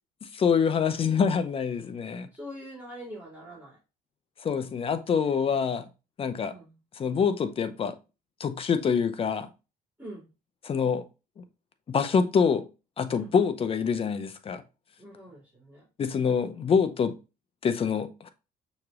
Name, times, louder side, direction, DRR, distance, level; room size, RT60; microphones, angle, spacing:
voice 1, 0.3-2.3 4.4-5.8 6.2-6.5 7.0-8.0 8.4-9.5 10.6-11.0 11.4-11.5 11.9-12.7 13.0-14.6 16.0-17.1 17.6-18.3, left 6 dB, 35° left, 0.6 m, -25 dB
voice 2, 2.3-3.8 4.5-4.8 5.0-5.2 6.4-6.8 10.0-10.3 13.1-13.3 15.0-15.9, equal, 10° right, 2.3 m, -44 dB
6.4 x 3.0 x 2.4 m
cardioid pair, 110°, 17 cm